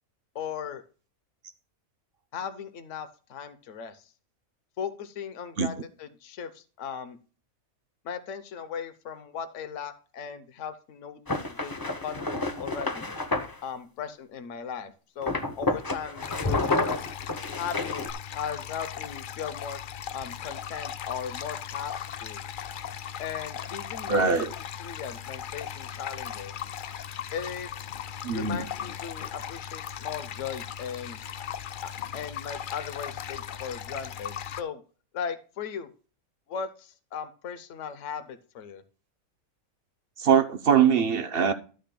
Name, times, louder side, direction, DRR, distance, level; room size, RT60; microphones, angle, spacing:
voice 1, 0.3-0.8 2.3-4.0 4.8-7.2 8.0-13.2 13.6-16.7 17.6-18.0 18.3-19.8 20.1-22.4 23.2-24.4 24.8-26.5 27.3-27.7 28.3-31.2 31.8-34.8 35.1-35.9 36.5-38.8, left 7 dB, 60° left, 1.2 m, -37 dB
sound 1, 11.3-13.5 15.2-18.1, left 2 dB, 20° left, 0.6 m, -29 dB
sound 2, 16.2-34.6, left 9 dB, 80° left, 0.4 m, -38 dB
voice 2, 24.1-24.5 28.2-28.6 40.2-41.5, right 7 dB, 50° right, 0.8 m, -22 dB
12.0 x 9.1 x 2.2 m
omnidirectional pair, 1.5 m